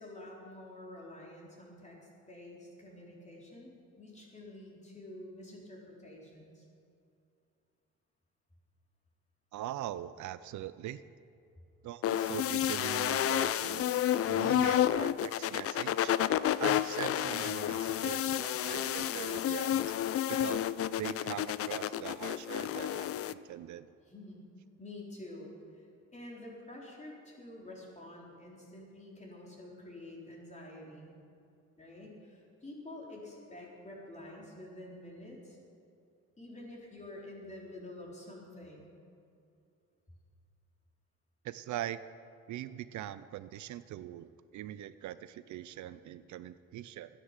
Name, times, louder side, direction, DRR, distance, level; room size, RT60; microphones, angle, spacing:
voice 1, 0.0-6.6 24.1-24.4 24.8-25.9 26.1-31.2 31.8-35.6 36.4-38.9, left 1 dB, 25° left, -3 dB, 4.0 m, -48 dB
voice 2, 9.5-11.0 11.8-16.2 16.6-20.6 21.0-23.9 41.4-42.0 42.5-47.1, right 12 dB, 75° right, 14 dB, 0.5 m, -42 dB
sound 1, 12.0-23.3, left 11 dB, 50° left, 0.4 m, -30 dB
13.5 x 10.0 x 7.4 m, 2.5 s
cardioid pair, 90°, 30 cm